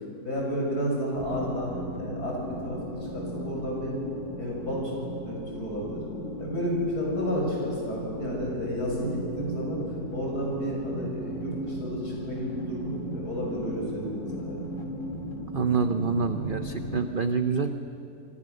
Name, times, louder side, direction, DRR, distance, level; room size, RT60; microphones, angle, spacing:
voice 1, 0.2-2.8 3.1-3.9 4.4-6.0 6.4-9.8 10.1-14.6, equal, 75° left, -2 dB, 7.3 m, -31 dB
sound 1, 1.2-17.0, equal, 50° left, 3.0 m, -37 dB
voice 2, 15.5-17.7, right 5 dB, 40° right, 8 dB, 0.8 m, -26 dB
27.5 x 24.5 x 6.6 m, 2.7 s
omnidirectional pair, 1.7 m